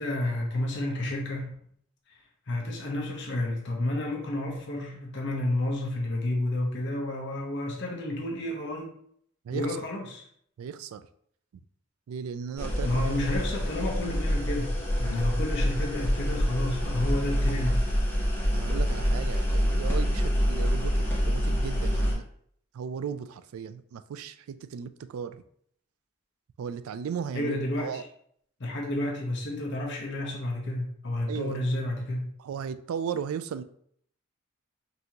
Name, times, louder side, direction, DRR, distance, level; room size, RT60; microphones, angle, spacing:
voice 1, 0.0-1.5 2.1-2.2 2.5-8.9 9.5-10.3 12.8-17.9 27.3-28.1 28.6-32.3, left 1 dB, 55° left, -1 dB, 0.9 m, -31 dB
voice 2, 10.6-11.0 12.1-13.3 18.5-22.2 22.7-25.4 26.6-28.0 31.3-31.6 32.4-33.6, right 7 dB, 85° right, 12 dB, 0.3 m, -36 dB
sound 1, 12.6-22.1, equal, 10° left, 0.9 m, -26 dB
5.4 x 2.7 x 2.9 m, 0.66 s
head